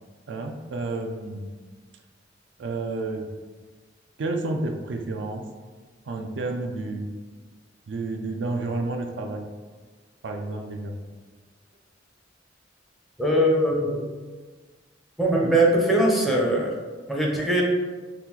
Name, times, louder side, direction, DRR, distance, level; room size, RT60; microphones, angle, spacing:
voice 1, 0.3-1.5 2.6-3.3 4.2-5.4 6.1-7.1 7.9-9.5 10.2-11.0, right 2 dB, 70° right, 4 dB, 0.4 m, -30 dB
voice 2, 13.2-14.0 15.2-16.7 17.1-17.6, right 1 dB, ahead, -3 dB, 0.5 m, -21 dB
2.9 x 2.4 x 3.7 m, 1.4 s
head